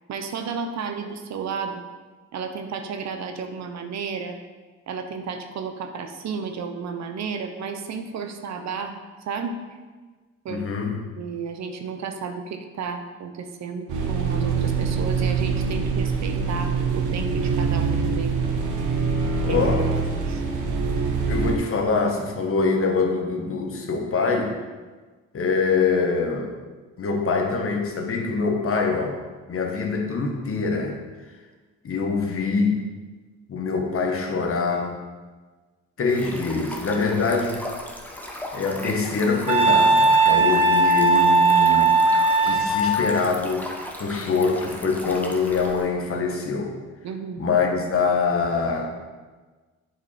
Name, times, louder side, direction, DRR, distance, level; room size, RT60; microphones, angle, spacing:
voice 1, 0.1-1.8 2.3-4.4 4.9-9.0 9.3-9.6 10.4-10.6 11.2-18.4 18.8-18.9 19.5-20.4 47.0-47.4, right 5 dB, 65° right, 6 dB, 0.9 m, -32 dB
voice 2, 10.5-11.0 19.4-19.8 21.3-24.6 25.3-26.5 27.0-29.2 29.5-31.0 31.8-32.8 33.5-35.0 36.0-37.6 38.5-41.9 42.4-43.7 43.9-46.7 47.4-48.9, left 4 dB, 45° left, 2 dB, 1.3 m, -24 dB
sound 1, 13.9-21.6, right 5 dB, 80° right, 1.2 m, -24 dB
Stream, 36.1-45.9, left 1 dB, 5° left, 1.0 m, -37 dB
Wind instrument woodwind instrument, 39.5-43.1, right 3 dB, 20° right, 0.9 m, -18 dB
8.2 x 4.9 x 4.3 m, 1.3 s
cardioid pair, 90°, 30 cm